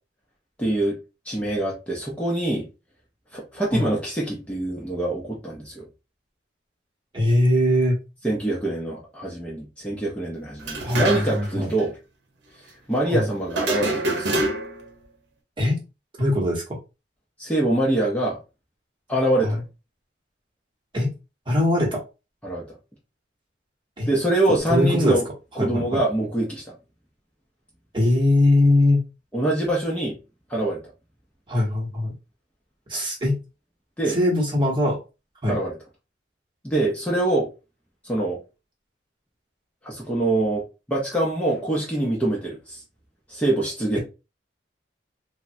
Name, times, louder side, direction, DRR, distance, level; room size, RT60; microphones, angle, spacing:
voice 1, 0.6-1.0 1.3-2.6 3.3-5.8 8.2-12.0 12.9-14.4 17.4-18.4 19.1-19.6 22.4-22.7 24.1-25.2 25.6-26.7 29.3-30.2 30.5-30.8 34.0-34.2 35.5-35.8 36.6-37.5 38.0-38.4 39.8-42.8 43.3-44.0, right 1 dB, 5° left, 0.6 m, -24 dB
voice 2, 7.1-8.0 10.8-11.7 13.1-13.3 15.6-15.8 16.2-16.6 19.4-19.5 20.9-21.1 21.5-22.0 24.0-24.1 24.5-25.2 25.6-26.0 27.9-29.0 31.5-32.1 32.9-33.4 34.1-35.0 35.4-35.6, left 1 dB, 25° right, 1.0 m, -21 dB
sound 1, 10.6-11.5 11.8-11.9 13.5-14.9, right 2 dB, 85° right, 0.8 m, -26 dB
3.4 x 2.1 x 2.6 m
head